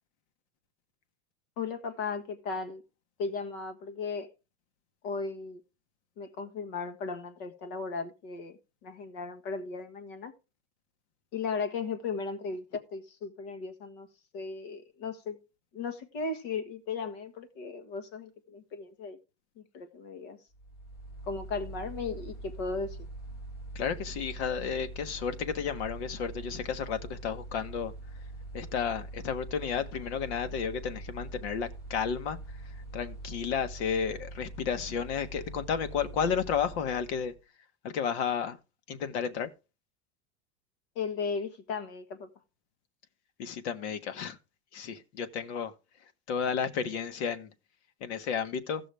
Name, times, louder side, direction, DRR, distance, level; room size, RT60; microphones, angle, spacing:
voice 1, 1.6-2.8 3.2-4.3 5.0-5.6 6.2-10.3 11.3-14.1 14.3-15.4 15.7-19.2 19.6-20.4 21.3-23.0 40.9-42.3, left 4 dB, 55° left, 1.6 m, -36 dB
Mechanical fan, 20.5-37.4, right 2 dB, 30° left, 1.9 m, -43 dB
voice 2, 23.7-27.9 28.5-32.4 32.9-37.3 37.8-38.6 38.9-39.5 43.4-44.4 44.7-45.7 46.3-47.5 48.0-48.8, left 7 dB, 75° left, 1.4 m, -32 dB
16.0 x 6.1 x 3.4 m
supercardioid pair, 175°, 33 cm